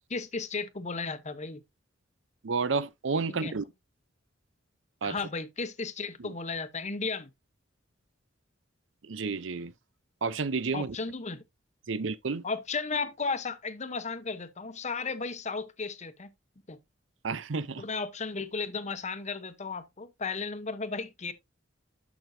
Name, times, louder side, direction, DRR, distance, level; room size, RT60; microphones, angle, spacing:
voice 1, 0.1-1.6 3.3-3.5 5.0-7.3 10.7-11.4 12.4-16.3 16.7-16.8 17.8-21.3, left 4 dB, 35° left, 1.0 m, -34 dB
voice 2, 2.4-3.6 5.0-5.2 6.2-6.3 9.1-9.7 10.2-11.0 11.9-12.4 17.2-17.8, right 4 dB, 70° right, 0.7 m, -31 dB
11.5 x 6.1 x 2.7 m
head